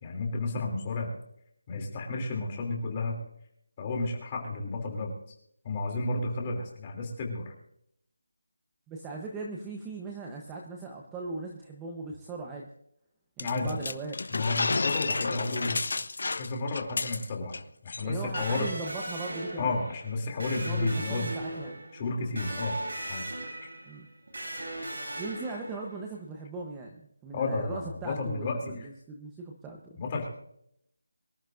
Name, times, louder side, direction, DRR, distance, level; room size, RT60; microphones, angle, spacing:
voice 1, 0.0-1.2 1.7-3.2 3.8-5.1 5.6-7.5 13.4-13.8 14.3-15.8 16.4-18.7 19.6-21.3 21.9-22.8 23.1-23.2 23.6-23.7 27.3-28.9 30.0-30.3, left 3 dB, 20° left, 0 dB, 2.9 m, -32 dB
voice 2, 8.9-12.7 13.4-14.2 18.0-19.8 20.6-21.8 23.8-24.1 25.2-30.0, right 3 dB, 10° right, 0 dB, 0.9 m, -39 dB
sound 1, 13.4-17.6 17.9-18.0 18.3-18.7, left 3 dB, 55° left, 0.7 m, -31 dB
Electric guitar, 18.4-26.1, right 1 dB, 65° right, 7.2 m, -38 dB
24.5 x 13.0 x 2.6 m, 0.72 s
figure-of-eight pair, 175°, 0 cm